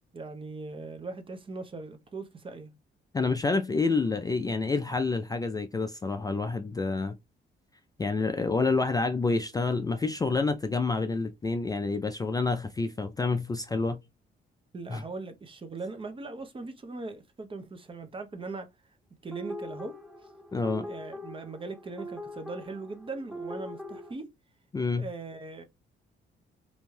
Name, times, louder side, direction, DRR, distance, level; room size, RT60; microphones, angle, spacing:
voice 1, 0.1-2.7 3.7-3.8 14.7-18.7 19.2-20.0 20.8-24.3 25.0-25.6, right 3 dB, 25° right, 0.6 m, -40 dB
voice 2, 3.1-7.2 8.0-14.0 14.9-15.0 20.5-20.9 24.7-25.1, left 3 dB, 20° left, 0.3 m, -28 dB
sound 1, 19.3-24.1, equal, 5° right, 0.9 m, -42 dB
2.6 x 2.2 x 3.1 m
cardioid pair, 90°, 20 cm